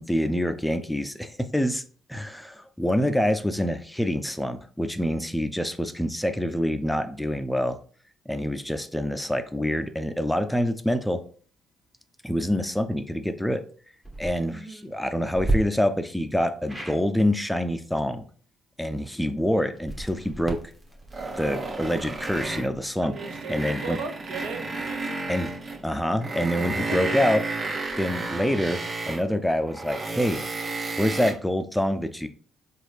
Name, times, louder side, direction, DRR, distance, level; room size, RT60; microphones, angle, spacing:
voice 1, 0.0-1.8 2.1-7.8 8.3-11.2 12.2-13.6 14.2-18.3 18.8-20.6 21.4-23.1 23.5-24.0 25.3-25.5 25.8-27.4 28.0-30.4 31.0-32.3, equal, 5° left, 9 dB, 0.4 m, -26 dB
sound 1, 14.0-14.3 15.3-15.6 16.7-17.0 19.7-22.6, right 2 dB, 15° right, 1.0 m, -32 dB
voice 2, 14.5-14.9 23.0-25.1 26.9-27.2, right 4 dB, 70° right, 6 dB, 0.5 m, -37 dB
sound 2, 21.1-22.8 23.1-25.8 26.2-29.3 29.7-31.3, right 3 dB, 55° right, 1.3 m, -32 dB
3.8 x 2.3 x 3.3 m, 0.44 s
hypercardioid pair, 50°, 0 cm